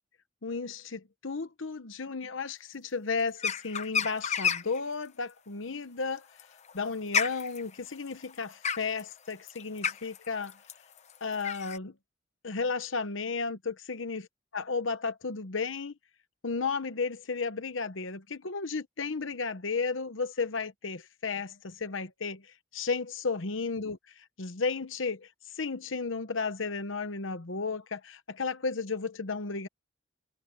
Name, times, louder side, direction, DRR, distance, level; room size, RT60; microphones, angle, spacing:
voice 1, 0.4-6.3 6.7-10.6 11.2-11.9 12.4-14.3 14.5-15.9 16.4-22.5 22.7-24.0 24.4-25.3 25.5-29.7, left 4 dB, 70° left, 1.0 m, -33 dB
sound 1, 3.4-4.8 6.2-11.8, left 7 dB, 35° left, 0.8 m, -31 dB
head